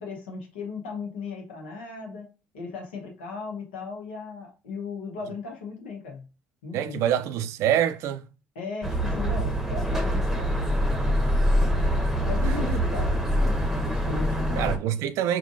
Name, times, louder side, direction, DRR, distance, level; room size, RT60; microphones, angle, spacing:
voice 1, 0.0-2.3 2.5-6.3 6.6-7.0 8.5-11.2 12.2-13.6 13.8-14.7, left 4 dB, 85° left, 0.9 m, -37 dB
voice 2, 6.7-8.2 12.5-12.7 14.6-15.4, right 10 dB, 65° right, 0.4 m, -26 dB
sound 1, 8.8-14.8, equal, 5° right, 0.9 m, -24 dB
3.6 x 2.4 x 2.5 m
hypercardioid pair, 55°, 5 cm